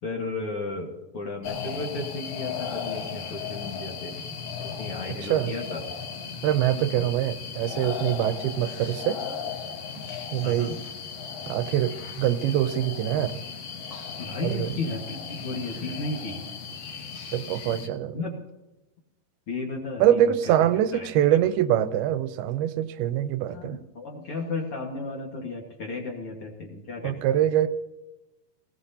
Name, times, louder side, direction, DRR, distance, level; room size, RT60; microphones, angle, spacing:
voice 1, 0.0-4.2 4.6-5.8 6.7-7.0 10.4-10.8 14.2-16.4 18.1-18.4 19.5-20.2 20.9-21.1 23.5-27.2, left 3 dB, 50° left, 0 dB, 1.8 m, -34 dB
sound 1, 1.4-17.9, left 6 dB, 70° left, 2.8 m, -36 dB
voice 2, 6.4-9.2 10.3-10.7 11.5-11.9 12.2-13.3 14.4-14.7 17.3-18.2 20.0-23.8 27.0-27.7, right 11 dB, 90° right, 12 dB, 2.6 m, -24 dB
18.5 x 17.0 x 2.8 m, 1.0 s
omnidirectional pair, 4.4 m